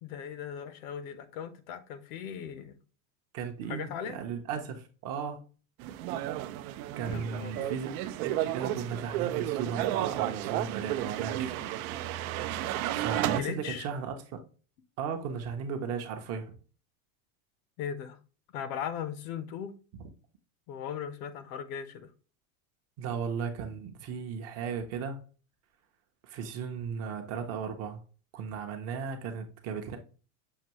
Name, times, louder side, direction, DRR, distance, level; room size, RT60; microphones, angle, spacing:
voice 1, 0.0-2.7 3.7-4.2 7.1-7.7 13.4-13.9 17.8-18.2 18.5-19.7 20.7-22.1, left 8 dB, 65° left, 0.8 m, -38 dB
voice 2, 3.3-5.4 7.0-11.8 12.9-14.4 15.0-16.6 23.0-25.2 26.2-28.0 28.3-30.0, right 6 dB, 35° right, 0.6 m, -36 dB
sound 1, 5.8-13.4, right 13 dB, 70° right, 0.5 m, -32 dB
6.5 x 2.7 x 2.9 m
cardioid pair, 170°, 45 cm